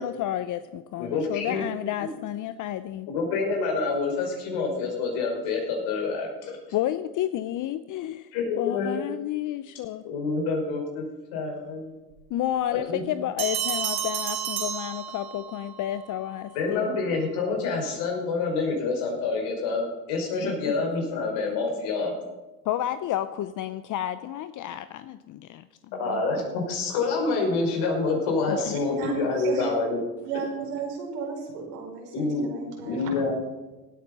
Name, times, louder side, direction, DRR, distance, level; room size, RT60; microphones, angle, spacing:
voice 1, 0.0-3.1 6.7-8.3 8.5-10.0 12.3-17.0 20.4-20.7 22.6-26.2 28.5-28.7, left 12 dB, 45° left, 13 dB, 0.7 m, -31 dB
voice 2, 1.0-1.6 3.1-6.6 8.3-9.0 10.0-11.0 11.3-11.9 12.7-13.0 16.5-22.1 26.0-30.0 32.1-32.4 32.8-33.3, left 4 dB, 65° left, 0 dB, 5.9 m, -27 dB
Bell, 13.4-15.6, right 9 dB, 65° right, 4.2 m, -30 dB
voice 3, 28.9-29.7 30.2-33.3, right 5 dB, 85° right, 0 dB, 5.2 m, -34 dB
17.5 x 9.1 x 5.5 m, 1.2 s
hypercardioid pair, 90°, 46 cm